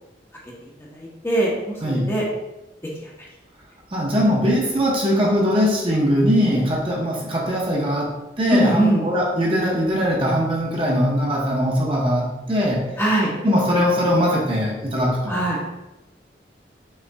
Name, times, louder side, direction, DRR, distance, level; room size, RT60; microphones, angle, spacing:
voice 1, 0.6-2.2 3.0-3.1 8.5-9.0 13.0-13.3 15.3-15.6, right 1 dB, 15° left, -4 dB, 0.8 m, -22 dB
voice 2, 3.9-12.8 13.4-15.4, equal, 30° right, -3 dB, 0.8 m, -21 dB
5.5 x 3.7 x 2.2 m, 0.97 s
head